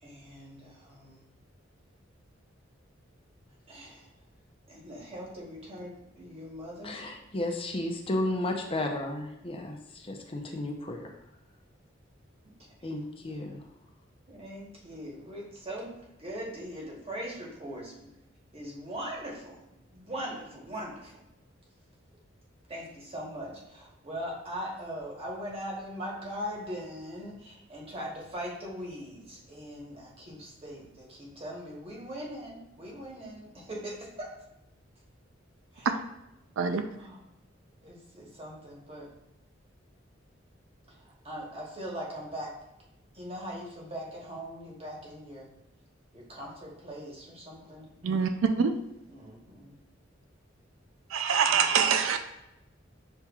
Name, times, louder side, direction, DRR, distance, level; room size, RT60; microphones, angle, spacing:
voice 1, 0.0-1.2 3.7-4.1 4.7-7.0 12.8-12.9 13.2-13.4 14.3-15.9 16.2-18.1 18.5-19.6 19.9-21.3 22.7-34.3 35.7-35.9 37.0-37.2 37.8-39.1 41.2-42.5 43.1-45.5 46.1-48.1 49.1-49.7, equal, 30° right, 1.1 m, -40 dB
voice 2, 6.8-11.1 12.8-13.6, left 1 dB, 30° left, 0.6 m, -33 dB
voice 3, 48.0-48.7 51.1-52.2, right 6 dB, 90° right, 0.4 m, -25 dB
6.8 x 3.0 x 2.4 m
head